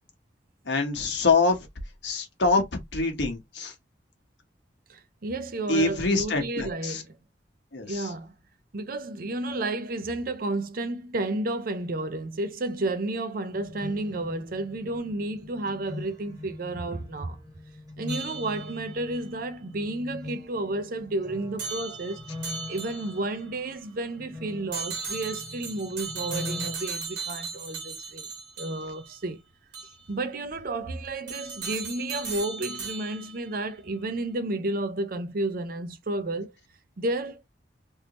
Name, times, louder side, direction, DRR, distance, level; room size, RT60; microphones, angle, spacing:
voice 1, 0.7-1.6 2.0-2.6 2.9-3.7 5.7-7.0 7.7-8.1, left 3 dB, 80° left, 1.2 m, -25 dB
voice 2, 4.9-7.2 7.9-8.3 8.7-17.4 18.0-22.2 22.7-28.3 28.6-29.4 30.1-36.5 37.0-37.4, right 2 dB, 55° right, 0.6 m, -31 dB
sound 1, 13.5-26.8, left 2 dB, 20° right, 1.0 m, -42 dB
sound 2, 18.1-19.0 21.6-23.3 24.7-29.1 29.7-29.9 31.3-33.4, right 4 dB, 85° right, 1.7 m, -37 dB
3.4 x 2.7 x 3.0 m
head